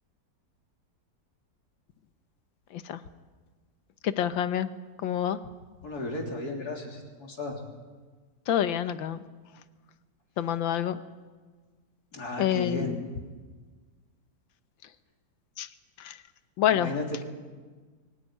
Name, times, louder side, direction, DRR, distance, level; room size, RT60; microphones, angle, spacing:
voice 1, 4.0-4.7 5.0-5.4 8.5-9.2 10.4-11.0 12.4-13.0 15.6-15.7 16.0-16.2 16.6-17.0, left 10 dB, 90° left, 12 dB, 1.7 m, -27 dB
voice 2, 5.8-7.6 12.1-13.0 16.7-17.2, left 2 dB, 55° left, 1 dB, 3.9 m, -34 dB
23.5 x 14.5 x 9.8 m, 1.4 s
omnidirectional pair, 2.0 m